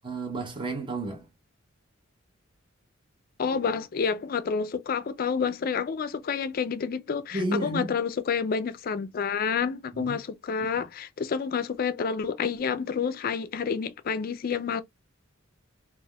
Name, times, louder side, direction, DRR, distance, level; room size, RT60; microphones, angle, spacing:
voice 1, 0.0-1.2 7.3-7.9 9.9-10.2, right 2 dB, 25° right, 0.8 m, -31 dB
voice 2, 3.4-14.8, left 6 dB, 45° left, 0.3 m, -29 dB
3.3 x 2.4 x 2.2 m
head